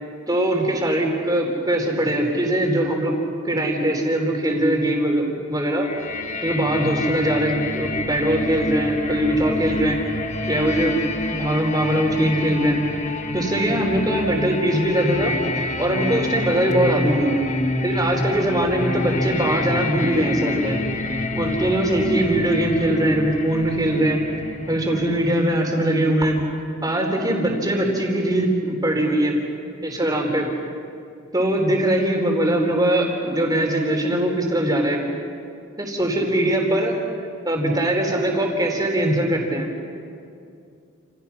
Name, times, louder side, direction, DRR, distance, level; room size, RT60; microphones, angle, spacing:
voice 1, 0.3-3.1 3.4-5.9 6.4-10.0 10.5-11.0 11.3-12.8 13.3-15.3 15.8-17.3 17.8-20.8 21.3-24.2 24.7-26.4 26.8-29.4 29.8-30.5 31.3-35.0 35.8-37.0 37.4-39.7, right 1 dB, 20° right, 1 dB, 4.3 m, -21 dB
sound 1, 5.8-25.6, left 2 dB, 35° left, 1.4 m, -28 dB
30.0 x 29.0 x 5.9 m, 2.5 s
head